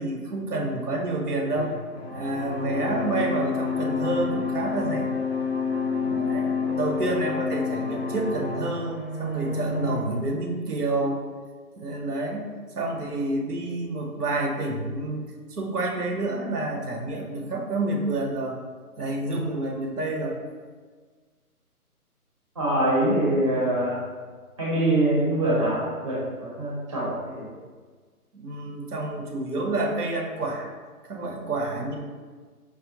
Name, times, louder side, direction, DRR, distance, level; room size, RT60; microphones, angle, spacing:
voice 1, 0.0-1.7 2.1-5.1 6.0-11.2 11.8-12.5 12.7-18.6 19.0-20.4 28.3-30.7 31.1-31.9, right 2 dB, 80° right, 0 dB, 0.8 m, -29 dB
sound 1, 1.6-10.0, left 4 dB, 45° left, 0.5 m, -29 dB
voice 2, 22.5-24.0 24.6-27.5, right 1 dB, 20° right, -8 dB, 0.6 m, -24 dB
4.8 x 2.1 x 2.8 m, 1.5 s
figure-of-eight pair, 150°, 46 cm